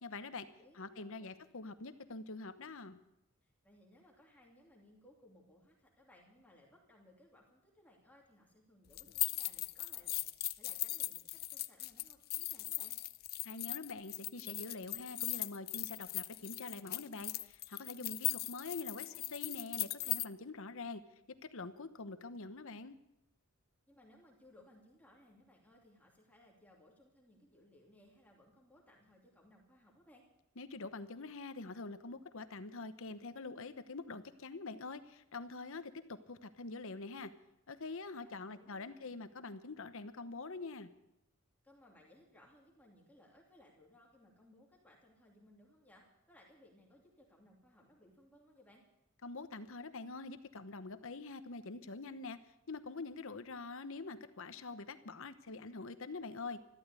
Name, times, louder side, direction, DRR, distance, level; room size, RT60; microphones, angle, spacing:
voice 1, 0.0-0.5 0.7-3.0 13.4-21.0 21.4-23.0 30.6-37.3 37.7-40.9 49.2-52.4 52.7-56.6, left 3 dB, 65° left, 11 dB, 1.0 m, -45 dB
voice 2, 0.6-1.3 3.4-12.9 18.6-19.3 23.9-30.3 38.2-39.2 41.6-48.8, left 1 dB, 5° left, -2 dB, 2.6 m, -64 dB
sound 1, 8.9-20.2, left 18 dB, 45° left, 0.5 m, -39 dB
13.5 x 12.5 x 8.2 m, 0.87 s
head